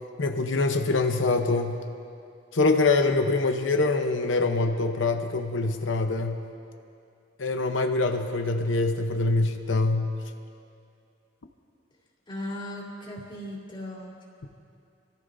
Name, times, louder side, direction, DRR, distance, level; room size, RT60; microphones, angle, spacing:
voice 1, 0.2-1.8 2.5-6.4 7.4-10.1, left 3 dB, 75° left, 4 dB, 0.9 m, -24 dB
voice 2, 12.3-14.1, left 1 dB, 25° left, -5 dB, 3.3 m, -37 dB
27.5 x 14.5 x 2.7 m, 2.5 s
head